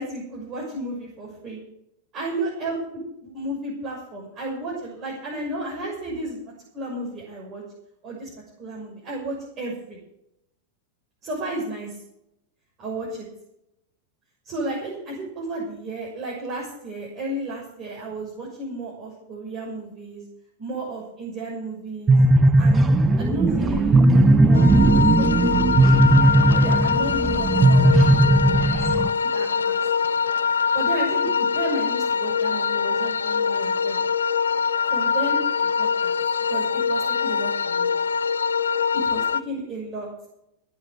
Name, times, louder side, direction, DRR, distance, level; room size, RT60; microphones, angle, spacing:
voice 1, 0.0-1.6 2.1-2.8 3.2-6.4 6.7-7.6 8.0-8.3 8.6-10.0 11.2-12.0 12.8-13.3 14.4-20.2 20.6-22.2 22.5-22.8 23.2-25.7 26.5-28.9 29.3-29.8 30.0-30.1 30.7-34.0 34.9-36.1 36.5-37.9 39.0-40.1, right 2 dB, 35° right, -3 dB, 6.6 m, -33 dB
sound 1, 22.1-29.1, right 2 dB, 20° right, 1.2 m, -17 dB
sound 2, 24.5-39.4, left 6 dB, 90° left, 0.6 m, -23 dB
17.5 x 7.6 x 8.0 m, 0.81 s
hypercardioid pair, 100°, 0 cm